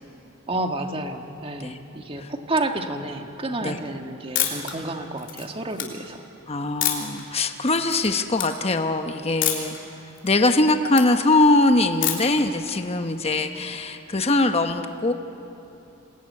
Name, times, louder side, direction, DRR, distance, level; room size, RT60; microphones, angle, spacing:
voice 1, 0.5-6.2, right 2 dB, 25° right, 5 dB, 1.6 m, -30 dB
Analog Camera Shutter, 4.3-4.7 5.2-5.8 6.8-7.2 7.7-8.1 8.3-8.5 9.4-9.8 10.1-11.1 12.0-12.4, left 11 dB, 60° left, 3.5 m, -26 dB
voice 2, 6.5-9.8 10.2-15.1, left 2 dB, 30° left, 7 dB, 1.0 m, -22 dB
26.5 x 20.0 x 9.7 m, 3.0 s
head